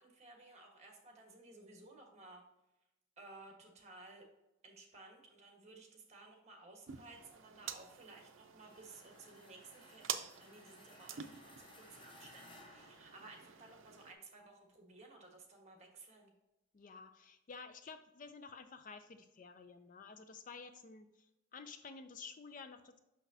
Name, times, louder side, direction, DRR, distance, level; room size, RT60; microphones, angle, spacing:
voice 1, 0.0-2.4 3.2-4.2 4.6-10.1 10.4-16.3, right 2 dB, 35° right, 2 dB, 1.3 m, -57 dB
sound 1, 6.9-14.1, right 8 dB, 75° right, 0.5 m, -48 dB
sound 2, 8.6-13.8, left 2 dB, 25° left, 0.9 m, -61 dB
voice 2, 16.7-23.0, left 5 dB, 40° left, 9 dB, 0.4 m, -52 dB
6.1 x 6.0 x 2.7 m, 0.93 s
head